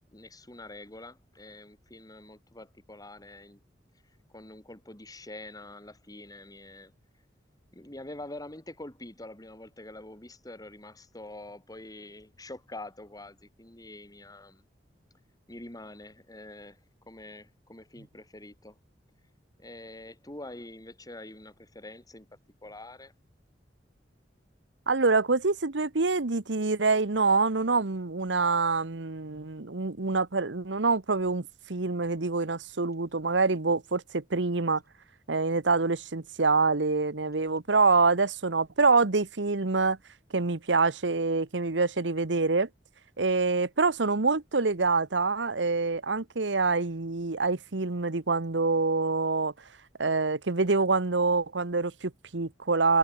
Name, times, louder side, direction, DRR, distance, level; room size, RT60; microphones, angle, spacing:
voice 1, 0.1-3.6 4.3-6.9 7.7-14.6 15.5-16.8 17.1-18.8 19.6-22.3 22.6-23.1, left 2 dB, 20° left, 2.8 m, -45 dB
voice 2, 24.9-34.8 35.3-40.0 40.3-42.7 43.2-49.5 50.0-53.0, right 4 dB, 85° right, 1.2 m, -26 dB
head